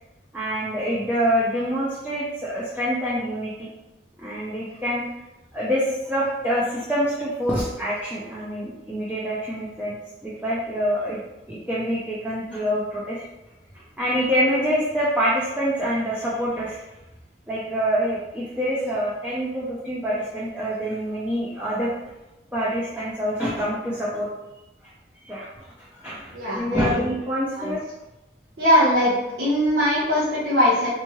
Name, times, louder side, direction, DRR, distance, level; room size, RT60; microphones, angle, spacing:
voice 1, 0.3-3.7 4.2-5.0 5.5-9.9 10.2-11.2 11.5-13.3 14.0-16.8 17.5-21.9 22.5-24.3 25.2-25.7 25.9-27.8, equal, 10° right, -8 dB, 0.6 m, -26 dB
voice 2, 26.3-26.9 27.6-27.7 28.6-29.1 29.4-30.9, equal, 70° right, -9 dB, 1.0 m, -20 dB
3.4 x 3.0 x 3.0 m, 1.0 s
head